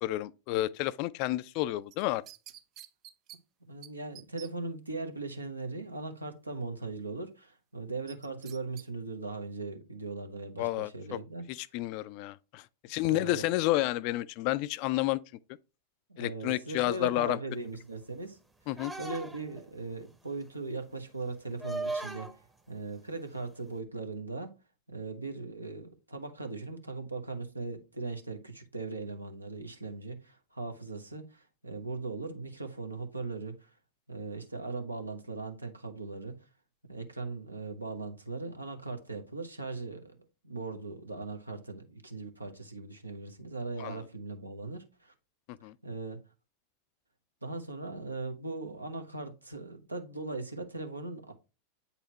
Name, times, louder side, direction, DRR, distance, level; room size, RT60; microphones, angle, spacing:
voice 1, 0.0-2.2 10.6-11.2 11.5-15.2 16.2-17.4 18.7-18.9 43.8-44.0 45.5-45.7, left 17 dB, 45° left, 0.3 m, -30 dB
sound 1, 1.9-3.4 3.8-3.9 4.2-4.5 8.1-8.9 9.3-9.4, right 12 dB, 35° right, 0.4 m, -49 dB
voice 2, 3.7-11.4 13.1-13.5 16.1-18.4 19.0-22.3 22.7-24.5 24.9-33.7 34.1-36.4 36.9-45.1 45.8-46.2 47.4-51.3, right 3 dB, 80° right, 0.9 m, -39 dB
sound 2, 18.8-19.6 21.6-22.4 23.7-23.8, right 2 dB, 5° right, 0.8 m, -37 dB
8.2 x 4.2 x 2.9 m
figure-of-eight pair, 90°, 0 cm